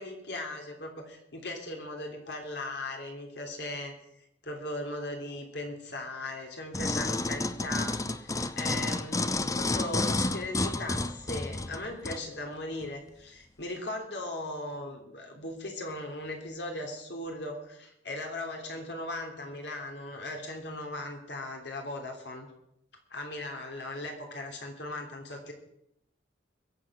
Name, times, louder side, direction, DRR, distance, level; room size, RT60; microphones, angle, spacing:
voice 1, 0.0-3.9 4.4-7.9 8.2-22.5 23.1-25.5, left 1 dB, 70° left, 2 dB, 3.2 m, -38 dB
sound 1, 6.7-12.2 12.8-12.9, left 2 dB, 20° left, 0.6 m, -30 dB
22.0 x 7.8 x 6.2 m, 0.79 s
head